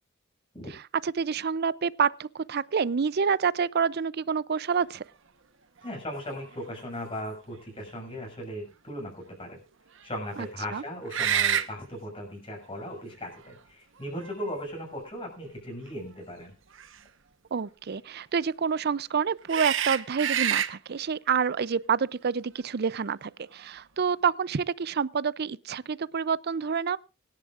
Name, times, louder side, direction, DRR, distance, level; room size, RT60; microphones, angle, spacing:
voice 1, 1.0-5.0 10.7-10.8 17.5-27.0, right 6 dB, 50° right, 0.5 m, -28 dB
voice 2, 5.8-9.6 10.0-16.5, equal, 25° left, 6.6 m, -37 dB
sound 1, 5.8-5.9 6.4-6.6 11.1-11.7 12.9-13.0 14.0-14.8 16.7-16.9 19.5-20.7, right 9 dB, 65° right, 1.1 m, -27 dB
24.5 x 11.0 x 2.5 m
head